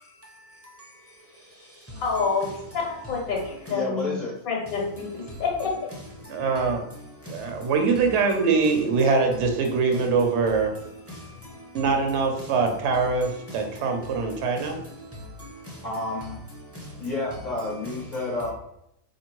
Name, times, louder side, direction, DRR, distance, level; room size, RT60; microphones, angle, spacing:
voice 1, 2.0-2.5 2.9-4.2 4.5-5.7, left 4 dB, 80° left, -1 dB, 1.3 m, -27 dB
voice 2, 3.7-4.4 15.8-16.4 17.0-18.5, left 2 dB, 45° left, -4 dB, 0.6 m, -30 dB
voice 3, 6.3-6.8 7.3-10.7 11.7-14.8, right 4 dB, 60° right, 4 dB, 0.8 m, -23 dB
voice 4, 7.2-7.7 11.1-11.7 13.8-13.9 14.6-14.7 15.1-15.8 16.7-16.9, left 1 dB, 15° right, -2 dB, 0.6 m, -42 dB
4.2 x 2.8 x 3.0 m, 0.78 s
omnidirectional pair, 1.5 m